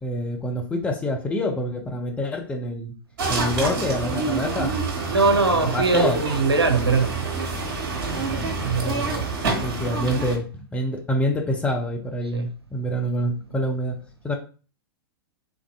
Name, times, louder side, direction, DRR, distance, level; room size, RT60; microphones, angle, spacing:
voice 1, 0.0-2.9 3.3-4.8 5.5-6.2 8.8-9.3 9.6-10.5 10.7-14.0 14.2-14.3, left 1 dB, 10° left, 0.6 m, -26 dB
sound 1, 3.2-10.4, right 4 dB, 50° right, 1.2 m, -27 dB
voice 2, 5.1-7.2 8.6-9.0 12.3-12.5, right 4 dB, 85° right, 0.6 m, -21 dB
3.5 x 2.6 x 3.5 m
figure-of-eight pair, 105°, 13 cm